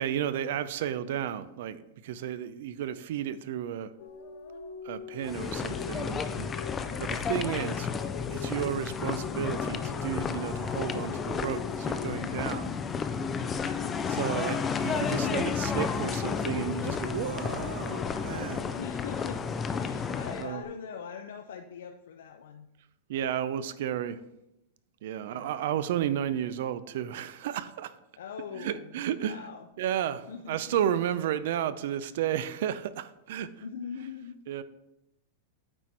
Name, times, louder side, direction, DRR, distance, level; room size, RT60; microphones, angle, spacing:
voice 1, 0.0-3.9 4.8-7.9 8.3-12.8 14.1-18.8 20.4-20.6 23.1-24.2 25.0-28.0 28.5-29.4 29.8-33.5 34.5-34.6, right 10 dB, 60° right, 0.5 m, -33 dB
sound 1, 4.0-13.8 14.1-20.7, left 6 dB, 60° left, 1.0 m, -43 dB
sound 2, 5.2-20.5, left 6 dB, 15° left, 0.4 m, -32 dB
voice 2, 13.7-14.3 18.8-19.4 19.8-22.7 25.2-25.7 28.1-29.0 29.2-29.7 30.3-31.0 33.6-34.4, left 7 dB, 85° left, 0.5 m, -42 dB
8.9 x 4.3 x 4.6 m
supercardioid pair, 165°, 0 cm